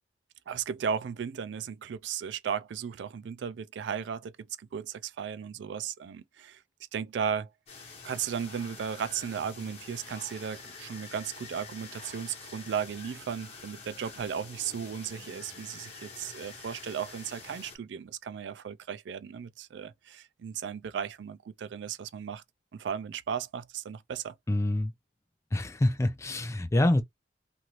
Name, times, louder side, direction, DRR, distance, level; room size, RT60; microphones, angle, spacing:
voice 1, 0.5-6.6 6.9-7.5 8.0-22.4 22.7-24.3, right 7 dB, 75° right, 0.3 m, -35 dB
sound 1, 7.7-17.8, left 4 dB, 35° left, 1.2 m, -47 dB
voice 2, 24.5-24.9 25.5-27.0, left 1 dB, 15° left, 0.4 m, -26 dB
2.6 x 2.5 x 3.0 m
head